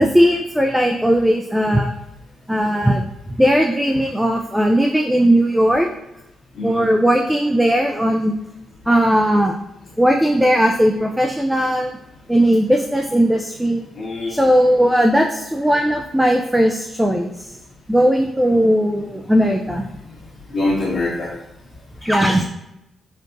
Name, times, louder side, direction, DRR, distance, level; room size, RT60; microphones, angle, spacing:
voice 1, 0.0-1.9 2.5-3.0 3.4-5.9 6.6-8.3 8.9-9.5 10.0-11.9 12.3-13.9 14.3-17.5 17.9-19.9 22.0-22.4, equal, 5° right, 2 dB, 0.4 m, -17 dB
voice 2, 6.5-6.9 13.9-14.4 20.5-21.3, left 2 dB, 65° left, -11 dB, 1.3 m, -23 dB
4.5 x 2.4 x 2.6 m, 0.88 s
supercardioid pair, 60°, 0 cm